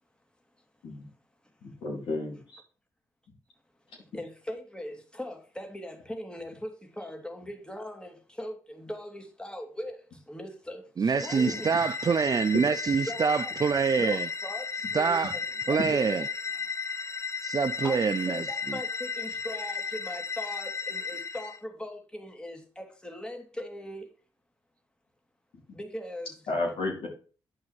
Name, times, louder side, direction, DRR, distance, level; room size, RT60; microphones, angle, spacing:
voice 1, 1.6-2.6 26.5-27.1, left 2 dB, 75° left, 4.0 m, -32 dB
voice 2, 4.1-11.7 13.1-13.5 14.0-15.4 15.7-16.2 17.8-24.1 25.7-26.3, left 1 dB, 10° left, 2.4 m, -40 dB
voice 3, 11.0-14.3 14.9-15.3 15.7-16.2 17.4-18.8, right 5 dB, 45° right, 0.5 m, -26 dB
sound 1, 11.1-21.6, left 5 dB, 35° left, 0.6 m, -34 dB
8.8 x 5.4 x 4.7 m
supercardioid pair, 50°, 9 cm